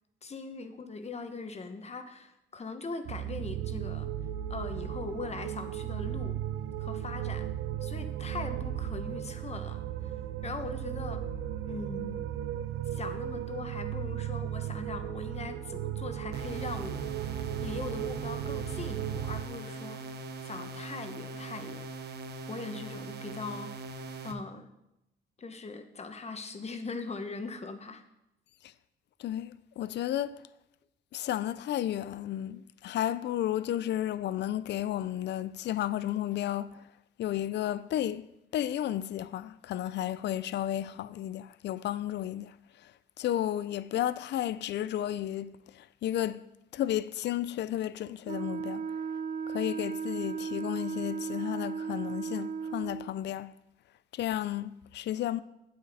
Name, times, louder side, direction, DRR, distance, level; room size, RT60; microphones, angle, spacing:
voice 1, 0.2-4.1 4.5-6.3 6.8-7.5 7.8-10.1 10.4-11.2 11.7-12.3 12.9-21.9 22.5-23.7 24.2-24.7 25.4-28.0, left 4 dB, 35° left, 1.1 m, -41 dB
sound 1, 3.0-19.4, right 11 dB, 80° right, 0.6 m, -36 dB
sound 2, 16.3-24.3, right 3 dB, 55° right, 1.0 m, -41 dB
voice 2, 29.2-30.3 31.1-36.9 37.2-38.2 38.5-42.6 42.8-42.9 43.2-46.4 46.7-48.8 49.5-53.5 54.1-55.4, left 12 dB, 60° left, 0.4 m, -33 dB
Wind instrument woodwind instrument, 48.3-53.1, right 6 dB, 40° right, 0.6 m, -35 dB
8.6 x 8.6 x 4.2 m
cardioid pair, 90°, 20 cm